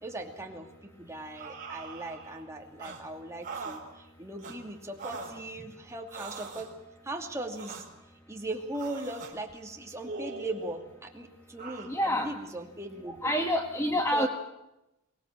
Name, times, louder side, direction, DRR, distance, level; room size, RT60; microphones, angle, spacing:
voice 1, 0.0-6.7 7.0-7.8 8.3-13.3 14.1-14.3, right 2 dB, 15° right, 2 dB, 2.6 m, -39 dB
sound 1, 1.3-2.4 2.8-3.0 3.4-3.8 4.4-4.6 5.0-5.4 6.1-6.7 7.5-7.9 8.7-9.3 10.0-10.8 11.6-11.9, right 4 dB, 35° right, 4.4 m, -42 dB
voice 2, 11.9-12.4 13.2-14.3, equal, 10° left, 4 dB, 1.3 m, -27 dB
24.0 x 19.0 x 7.5 m, 0.91 s
head